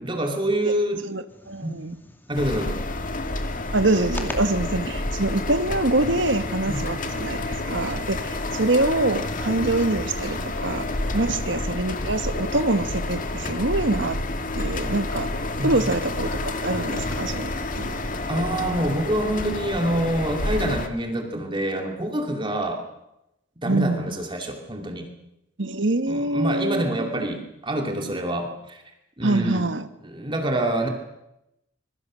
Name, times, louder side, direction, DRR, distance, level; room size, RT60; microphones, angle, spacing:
voice 1, 0.0-1.0 1.6-1.7 2.3-2.8 6.7-6.8 11.1-11.4 15.6-15.9 18.3-22.8 23.6-25.1 26.1-28.8 29.2-29.7 30.0-30.9, right 1 dB, 25° right, 3 dB, 2.5 m, -26 dB
voice 2, 1.1-1.9 3.7-10.9 11.1-14.2 14.6-15.3 15.6-17.9 23.6-24.1 25.6-27.2 29.2-29.9, right 2 dB, 65° right, 10 dB, 1.5 m, -25 dB
sound 1, 1.3-6.8, left 1 dB, 10° left, 2.2 m, -44 dB
sound 2, 2.3-20.9, left 2 dB, 40° left, 1.9 m, -29 dB
25.0 x 22.5 x 6.4 m, 0.87 s
head